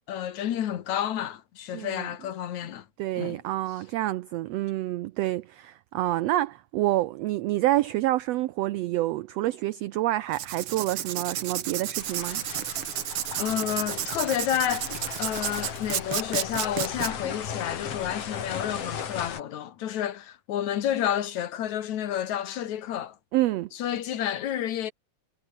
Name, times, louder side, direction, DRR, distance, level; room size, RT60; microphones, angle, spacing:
voice 1, 0.1-2.8 3.2-3.4 13.4-14.9 15.2-23.2 23.7-24.9, left 10 dB, 70° left, 2.8 m, -30 dB
voice 2, 1.7-2.1 3.0-12.4 23.3-23.7, right 16 dB, 75° right, 1.6 m, -28 dB
Writing, 10.3-17.1, right 11 dB, 55° right, 1.8 m, -32 dB
sound 1, 12.0-19.4, left 7 dB, 55° left, 3.2 m, -37 dB
omnidirectional pair, 3.5 m